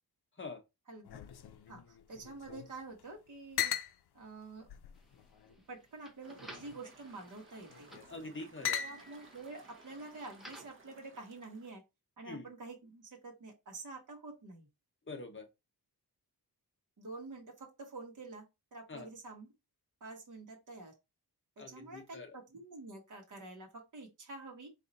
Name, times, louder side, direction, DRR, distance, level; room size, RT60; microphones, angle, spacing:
voice 1, 0.9-1.2 1.7-3.7 4.1-4.7 5.5-7.9 8.8-11.8 12.2-14.7 17.0-18.5 18.7-19.5 20.0-20.9 21.6-24.7, right 3 dB, 50° right, 1.2 m, -48 dB
sound 1, 1.0-2.7 3.0-3.1 3.6-3.9 4.7-5.5 6.4-6.8 7.7-8.1 8.6-9.3, left 9 dB, 75° left, 0.6 m, -39 dB
sound 2, 4.9-10.8, right 1 dB, ahead, 0.8 m, -56 dB
sound 3, 6.2-11.7, right 3 dB, 30° right, 1.0 m, -60 dB
voice 2, 8.1-8.8 12.2-12.5 15.1-15.5 18.9-19.1 21.6-22.4, left 3 dB, 30° left, 0.8 m, -45 dB
4.1 x 2.6 x 4.0 m
wide cardioid pair, 165°, 39 cm